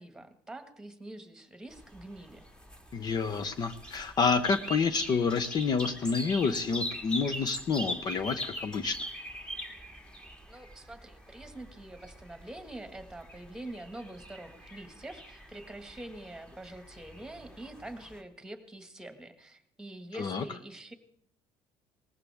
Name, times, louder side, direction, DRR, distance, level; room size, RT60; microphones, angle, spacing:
voice 1, 0.0-2.5 10.5-20.9, right 1 dB, 5° right, 8 dB, 1.8 m, -45 dB
sound 1, 1.7-18.2, equal, 10° left, 1.9 m, -42 dB
voice 2, 2.9-9.0 20.1-20.4, left 5 dB, 45° left, 12 dB, 0.9 m, -29 dB
19.0 x 15.0 x 3.5 m, 0.68 s
cardioid pair, 115°, 10 cm